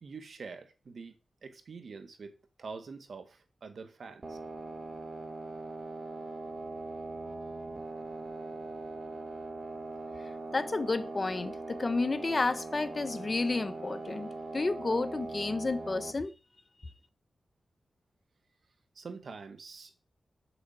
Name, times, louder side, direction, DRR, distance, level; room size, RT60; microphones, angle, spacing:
voice 1, 0.0-1.1 1.4-4.4 19.0-20.0, right 4 dB, 70° right, 1.9 m, -45 dB
sound 1, 4.2-16.1, right 3 dB, 40° right, 2.0 m, -41 dB
voice 2, 10.5-16.3, left 3 dB, 40° left, 1.2 m, -31 dB
8.0 x 7.3 x 8.4 m
cardioid pair, 70°, 0 cm